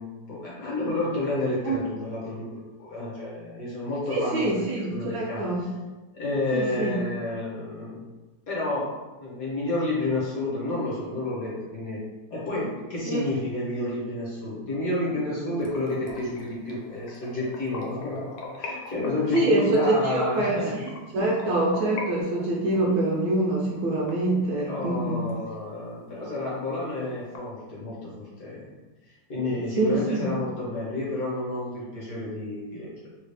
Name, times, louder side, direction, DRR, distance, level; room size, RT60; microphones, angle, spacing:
voice 1, 0.0-5.4 6.1-8.0 8.5-8.9 9.2-12.0 12.3-18.2 18.6-20.7 24.6-28.7 29.3-32.9, left 2 dB, 55° left, -6 dB, 1.3 m, -30 dB
voice 2, 4.1-5.7 6.5-7.0 13.1-13.2 19.3-20.8 21.1-25.3 29.8-30.2, right 2 dB, 70° right, -3 dB, 1.0 m, -25 dB
sound 1, 15.6-22.1 22.4-24.9 25.3-25.4 25.8-25.9 26.3-26.4 26.6-27.4, left 3 dB, 90° left, 1.4 m, -40 dB
3.3 x 2.3 x 3.3 m, 1.1 s
omnidirectional pair, 2.0 m